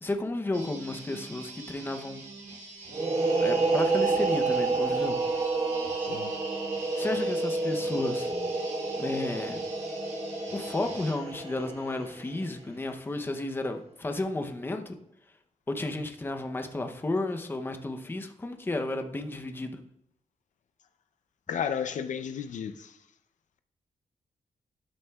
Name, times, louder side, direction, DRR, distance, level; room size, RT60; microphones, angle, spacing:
voice 1, 0.0-2.2 3.3-5.2 7.0-8.4 9.0-9.7 10.5-15.0 15.7-19.8, left 2 dB, 15° left, 0.6 m, -32 dB
sound 1, 0.5-11.2, right 3 dB, 70° right, 3.1 m, -45 dB
sound 2, 2.9-12.4, right 3 dB, 45° right, 1.4 m, -29 dB
voice 2, 6.0-6.4 21.5-23.0, left 7 dB, 70° left, 0.5 m, -33 dB
12.0 x 6.3 x 2.3 m
wide cardioid pair, 155°, 13 cm